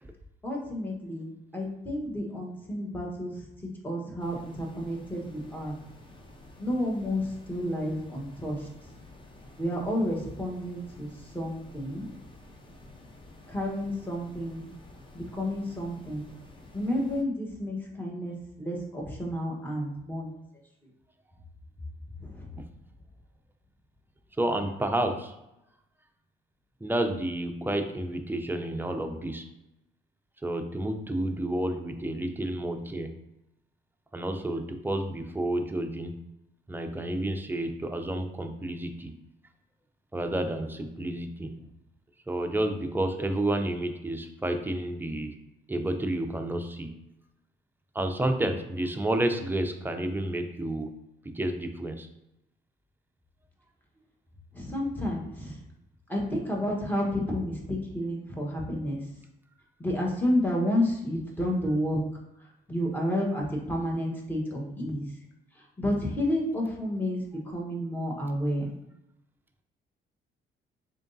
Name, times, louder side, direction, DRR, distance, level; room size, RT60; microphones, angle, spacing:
voice 1, 0.4-3.5 3.8-5.8 6.6-8.7 9.6-12.1 13.5-14.7 15.1-16.3 16.7-20.3 22.2-22.5 54.5-55.6 56.1-59.1 59.8-62.0 62.4-65.1 65.5-68.7, left 1 dB, 10° left, -2 dB, 1.1 m, -31 dB
sound 1, 4.2-17.2, left 2 dB, 25° left, 0.7 m, -51 dB
voice 2, 24.4-25.4 26.8-29.4 30.4-33.1 34.1-36.2 36.7-39.1 40.1-41.6 42.3-45.3 45.7-46.9 47.9-50.9 51.2-52.1, right 1 dB, 10° right, 5 dB, 0.5 m, -30 dB
3.8 x 3.4 x 2.6 m, 0.87 s
cardioid pair, 90°, 20 cm